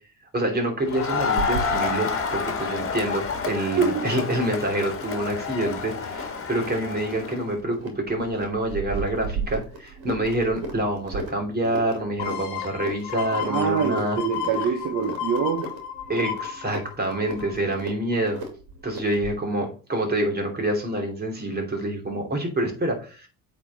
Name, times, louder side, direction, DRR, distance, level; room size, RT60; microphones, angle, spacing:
voice 1, 0.3-14.2 16.1-18.4 18.8-23.3, right 1 dB, 25° right, 2.8 m, -27 dB
Crowd, 0.9-7.4, left 5 dB, 35° left, 1.8 m, -29 dB
sound 1, 1.4-19.4, right 4 dB, 75° right, 2.4 m, -37 dB
voice 2, 3.8-4.1 13.4-15.7, right 6 dB, 50° right, 1.0 m, -25 dB
sound 2, 12.2-17.7 18.1-18.2, left 9 dB, 85° left, 1.2 m, -33 dB
8.3 x 4.2 x 4.1 m
supercardioid pair, 80°, 37 cm